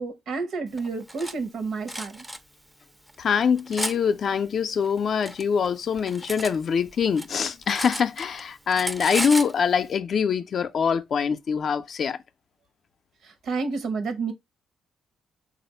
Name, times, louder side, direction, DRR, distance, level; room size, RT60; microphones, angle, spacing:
voice 1, 0.0-2.2 13.2-14.3, right 4 dB, 70° right, 0.9 m, -30 dB
Cutlery silverware, 0.8-1.3 1.9-2.4 3.1-4.0 4.8-6.6 6.9-8.4 8.7-9.5, right 1 dB, 10° right, 0.4 m, -33 dB
voice 2, 3.2-12.2, left 6 dB, 55° left, 0.4 m, -24 dB
3.4 x 2.5 x 4.3 m
cardioid pair, 90°, 0 cm